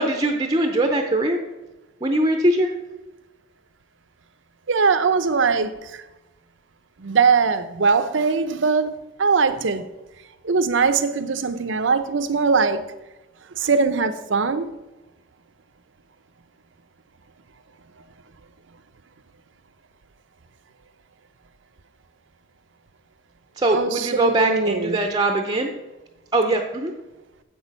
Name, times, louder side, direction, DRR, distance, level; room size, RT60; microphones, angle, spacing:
voice 1, 0.0-1.4 2.0-2.7 23.6-25.7 26.3-26.9, right 2 dB, 20° right, 0.6 m, -21 dB
voice 2, 4.7-6.0 7.0-8.9 9.2-9.9 10.4-12.8 13.6-14.7 23.7-25.0, right 5 dB, 70° right, 0.6 m, -21 dB
7.9 x 6.3 x 5.3 m
head